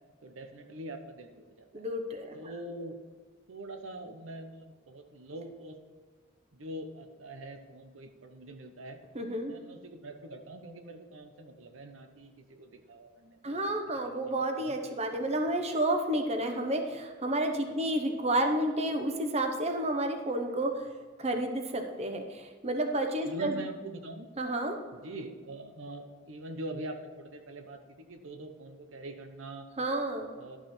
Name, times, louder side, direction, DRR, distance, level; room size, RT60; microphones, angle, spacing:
voice 1, 0.2-1.9 2.3-3.0 3.5-5.8 6.5-9.0 9.4-13.7 14.0-14.2 14.6-14.7 23.2-24.3 24.9-29.7 30.3-30.6, right 1 dB, 85° right, 6 dB, 0.9 m, -43 dB
voice 2, 1.7-2.4 9.1-9.5 13.4-20.7 21.2-23.6 24.4-24.8 29.8-30.3, right 1 dB, 35° right, 5 dB, 0.9 m, -30 dB
11.5 x 6.0 x 4.3 m, 1.5 s
head